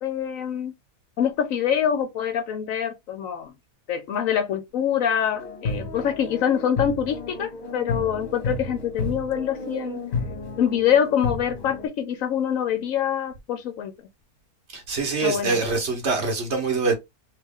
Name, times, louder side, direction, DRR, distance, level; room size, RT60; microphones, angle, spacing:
voice 1, 0.0-0.7 1.2-3.5 3.9-10.0 10.6-13.9 15.2-15.6, left 9 dB, 70° left, 0.9 m, -25 dB
sound 1, 5.3-11.9, left 3 dB, 50° left, 1.1 m, -32 dB
voice 2, 14.7-16.9, right 4 dB, 50° right, 1.2 m, -24 dB
3.1 x 2.9 x 3.5 m
omnidirectional pair, 1.6 m